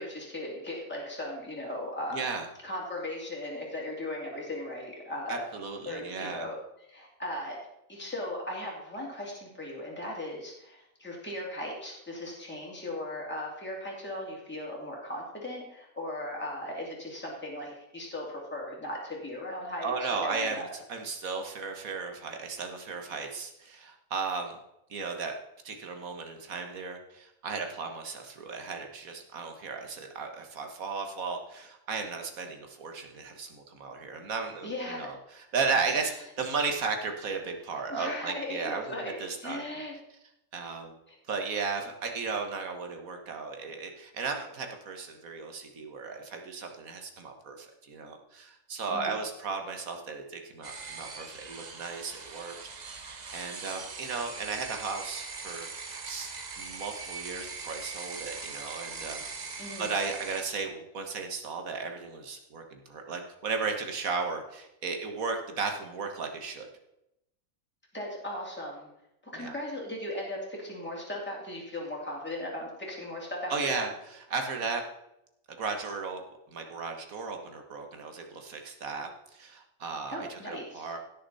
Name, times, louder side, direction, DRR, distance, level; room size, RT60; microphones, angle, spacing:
voice 1, 0.0-2.3 2.6-5.4 5.8-6.5 6.9-7.6 7.9-20.7 34.6-35.1 37.9-39.9 41.1-41.2 48.9-49.2 59.6-59.9 67.9-68.9 69.3-73.9 80.1-80.9, left 1 dB, 5° left, -3 dB, 2.7 m, -37 dB
voice 2, 2.1-2.5 5.3-6.5 19.8-24.6 24.9-25.4 25.6-39.6 40.5-40.9 41.3-52.6 52.9-55.7 56.0-56.3 56.6-59.2 59.8-66.7 69.3-69.6 73.5-74.8 75.6-81.0, right 4 dB, 75° right, 4 dB, 1.9 m, -35 dB
sound 1, 50.6-60.4, right 4 dB, 35° right, 0.9 m, -41 dB
16.5 x 6.7 x 4.1 m, 0.85 s
omnidirectional pair, 1.5 m